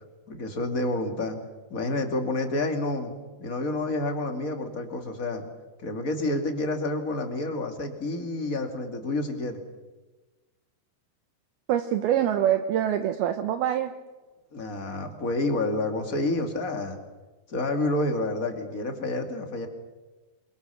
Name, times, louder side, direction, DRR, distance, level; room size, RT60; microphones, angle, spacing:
voice 1, 0.3-1.4 1.7-3.1 3.4-5.4 5.8-9.6 14.5-17.0 17.5-19.7, left 2 dB, 25° left, 5 dB, 1.9 m, -29 dB
voice 2, 11.7-13.9, right 10 dB, 75° right, 8 dB, 2.7 m, -25 dB
27.5 x 23.0 x 7.0 m, 1.2 s
omnidirectional pair, 4.9 m